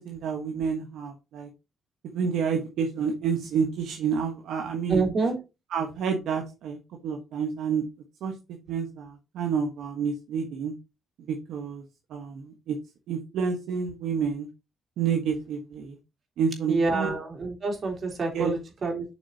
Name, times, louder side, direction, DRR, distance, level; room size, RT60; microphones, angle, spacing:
voice 1, 0.0-1.5 2.0-5.0 5.7-7.8 8.2-8.3 8.7-10.7 11.3-11.8 12.1-12.8 13.1-14.5 15.0-16.0 16.4-17.1 18.3-18.5, right 6 dB, 80° right, 2 dB, 1.3 m, -29 dB
voice 2, 4.9-5.4 16.7-19.0, right 3 dB, 45° right, 1 dB, 3.5 m, -27 dB
8.0 x 6.1 x 2.9 m, 0.27 s
cardioid pair, 90°, 0 cm